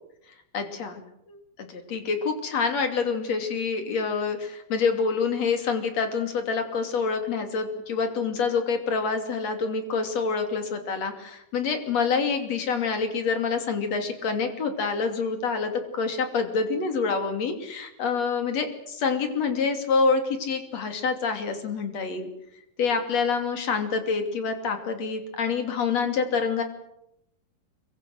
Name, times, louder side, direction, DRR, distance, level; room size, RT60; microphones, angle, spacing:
voice 1, 0.5-1.0 1.3-22.3 22.8-26.6, left 5 dB, 50° left, 7 dB, 3.9 m, -27 dB
25.5 x 24.0 x 7.9 m, 0.80 s
omnidirectional pair, 3.9 m